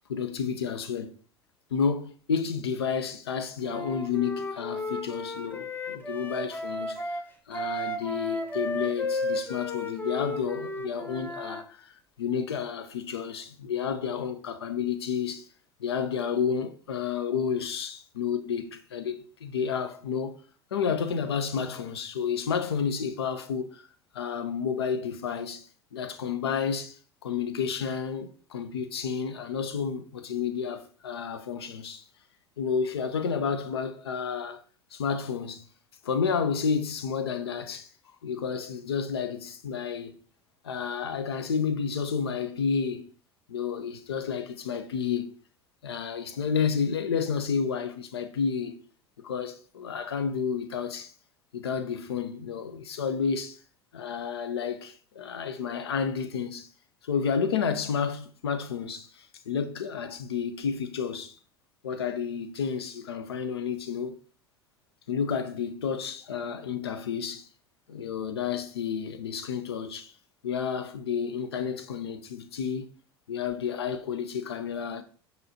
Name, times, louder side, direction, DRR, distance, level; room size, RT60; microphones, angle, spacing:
voice 1, 0.1-1.1 1.7-7.2 7.5-15.5 15.8-20.4 20.7-23.9 24.1-27.0 27.2-32.0 32.6-34.6 34.9-35.7 36.0-37.9 38.2-40.2 40.6-43.1 43.5-45.4 45.8-48.8 49.2-51.1 51.5-53.6 53.9-56.7 57.0-61.4 61.8-64.1 65.1-67.5 67.9-70.1 70.4-72.9 73.3-75.0, left 6 dB, 85° left, 0.4 m, -31 dB
Wind instrument woodwind instrument, 3.6-11.6, left 1 dB, 15° left, 0.6 m, -33 dB
5.5 x 2.7 x 2.7 m
hypercardioid pair, 75°, 13 cm